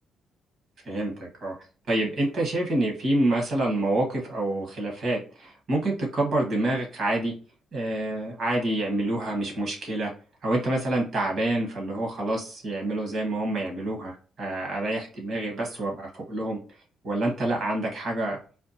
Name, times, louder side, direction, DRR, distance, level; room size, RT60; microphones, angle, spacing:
voice 1, 0.8-1.5 1.9-7.3 7.7-10.1 10.4-16.6 17.0-18.4, right 1 dB, 55° right, 0 dB, 1.6 m, -27 dB
4.3 x 2.4 x 2.9 m, 0.37 s
cardioid pair, 90°, 0 cm